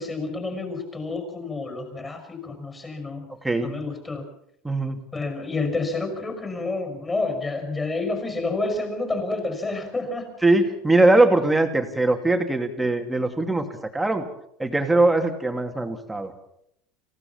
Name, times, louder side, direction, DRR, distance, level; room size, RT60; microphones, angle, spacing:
voice 1, 0.0-3.3 3.6-4.3 5.1-10.3, left 3 dB, 15° left, 6 dB, 5.5 m, -29 dB
voice 2, 3.4-3.7 4.6-5.0 10.4-13.7 13.9-14.2 14.6-16.3, right 2 dB, 5° right, 5 dB, 2.5 m, -21 dB
27.0 x 16.0 x 7.2 m, 0.75 s
cardioid pair, 150°, 0 cm